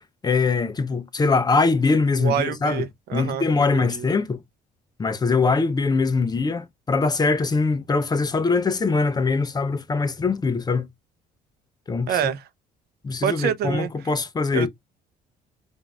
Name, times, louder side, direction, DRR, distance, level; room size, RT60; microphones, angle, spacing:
voice 1, 0.2-2.8 3.1-4.4 5.0-10.9 11.9-12.1 13.0-14.7, left 4 dB, 25° left, 0.6 m, -22 dB
voice 2, 2.2-4.1 12.1-12.5 13.2-14.1 14.5-14.7, right 9 dB, 70° right, 0.7 m, -27 dB
5.1 x 2.6 x 2.3 m
cardioid pair, 110°, 17 cm